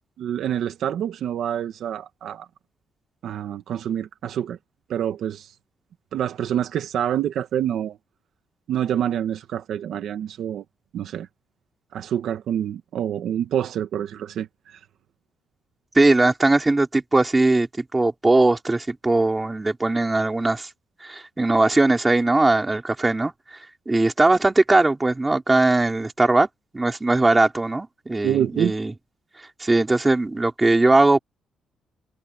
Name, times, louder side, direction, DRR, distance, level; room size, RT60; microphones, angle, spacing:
voice 1, 0.2-2.5 3.2-4.6 4.9-5.5 6.1-8.0 8.7-10.6 10.9-11.3 11.9-14.8 28.2-28.7, right 10 dB, 65° right, 1.9 m, -27 dB
voice 2, 15.9-20.7 21.0-23.3 23.9-26.5 26.7-28.9 29.6-31.2, right 2 dB, 15° right, 4.0 m, -19 dB
cardioid pair, 155°, 0 cm